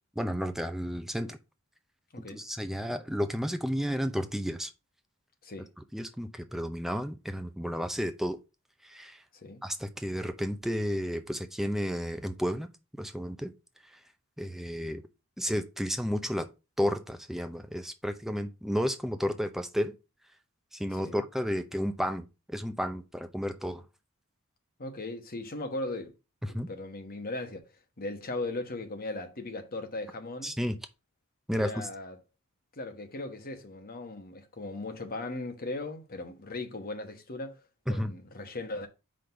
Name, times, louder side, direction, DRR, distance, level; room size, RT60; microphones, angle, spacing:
voice 1, 0.2-1.4 2.3-4.7 5.9-8.4 8.8-9.2 9.6-12.7 13.0-13.5 14.4-15.0 15.4-16.5 16.8-19.9 20.7-23.8 26.5-26.7 30.4-30.8 31.5-31.9 37.9-38.1, equal, ahead, 0.5 m, -32 dB
voice 2, 24.8-26.1 26.5-27.7 28.0-30.5 31.5-32.2 32.8-38.9, left 2 dB, 45° left, 1.2 m, -38 dB
5.0 x 3.9 x 5.7 m
head